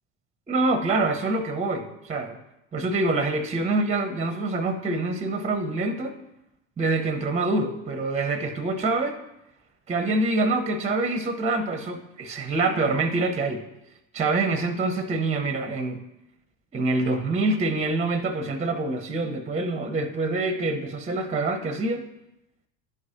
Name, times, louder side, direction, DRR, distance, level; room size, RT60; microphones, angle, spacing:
voice 1, 0.5-2.4 2.7-6.1 6.8-9.1 9.9-13.6 14.1-16.0 16.7-22.0, right 2 dB, 15° right, 8 dB, 0.7 m, -25 dB
11.0 x 4.8 x 2.8 m, 0.88 s
hypercardioid pair, 70°, 43 cm